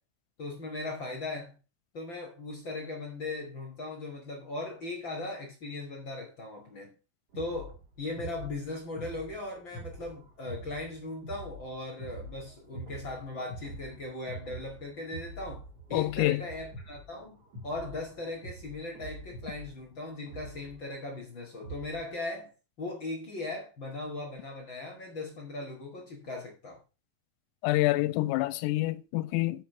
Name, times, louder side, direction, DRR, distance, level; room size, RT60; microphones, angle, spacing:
voice 1, 0.4-1.5 1.9-6.9 7.3-22.5 22.8-26.8, left 2 dB, 50° left, 1.4 m, -38 dB
sound 1, 7.3-22.1, right 2 dB, 40° right, 2.6 m, -46 dB
voice 2, 15.9-16.4 27.6-29.6, left 18 dB, 90° left, 3.3 m, -27 dB
7.4 x 6.6 x 6.8 m
omnidirectional pair, 5.8 m